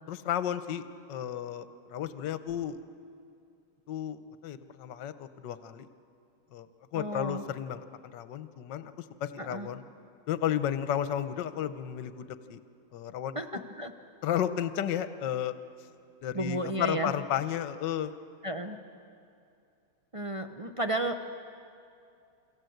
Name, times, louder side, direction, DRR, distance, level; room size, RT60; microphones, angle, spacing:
voice 1, 0.1-0.8 1.1-2.8 3.9-5.9 6.5-6.7 6.9-7.8 8.1-8.9 9.2-9.8 10.3-12.6 12.9-13.6 14.2-15.5 16.2-18.1, left 10 dB, 65° left, 11 dB, 1.4 m, -33 dB
voice 2, 6.9-7.4 9.4-9.7 13.3-13.9 16.3-17.1 18.4-18.8 20.1-21.3, right 1 dB, 40° right, 5 dB, 0.4 m, -33 dB
29.0 x 25.0 x 7.9 m, 2.5 s
omnidirectional pair, 2.3 m